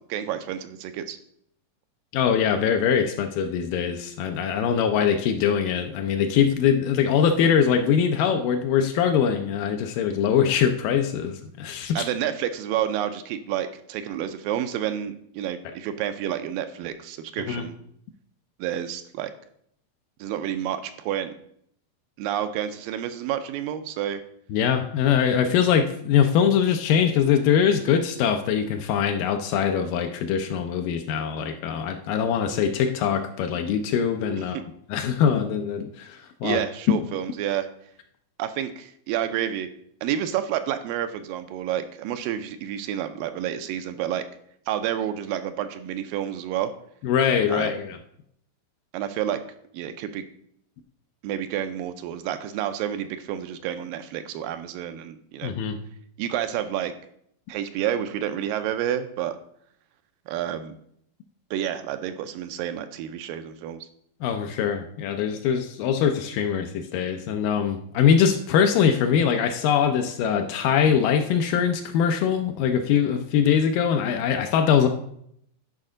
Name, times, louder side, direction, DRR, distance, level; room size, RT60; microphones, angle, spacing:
voice 1, 0.1-1.2 12.0-17.8 18.6-19.3 20.2-21.3 22.2-24.2 36.4-37.7 38.4-39.7 40.0-44.2 44.7-46.7 47.5-47.8 48.9-49.4 49.7-50.3 51.2-55.5 56.2-56.9 57.5-59.4 60.3-60.8 61.5-63.9, right 10 dB, 85° right, 9 dB, 2.3 m, -29 dB
voice 2, 2.1-12.1 15.7-15.8 17.5-17.6 24.5-34.6 34.9-36.6 36.9-37.0 47.0-48.0 55.4-55.8 64.2-74.9, left 8 dB, 80° left, 5 dB, 2.2 m, -22 dB
10.5 x 5.3 x 3.8 m, 0.69 s
omnidirectional pair, 4.0 m